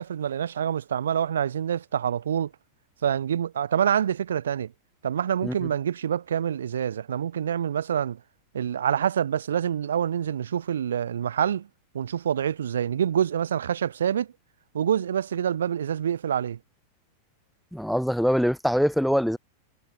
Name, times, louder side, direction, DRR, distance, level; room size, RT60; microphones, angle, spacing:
voice 1, 0.0-2.5 3.0-4.7 5.0-8.2 8.5-11.7 11.9-14.3 14.7-16.6, right 9 dB, 65° right, 7.5 m, -26 dB
voice 2, 17.7-19.4, equal, ahead, 7.4 m, -23 dB
figure-of-eight pair, 90°, 0 cm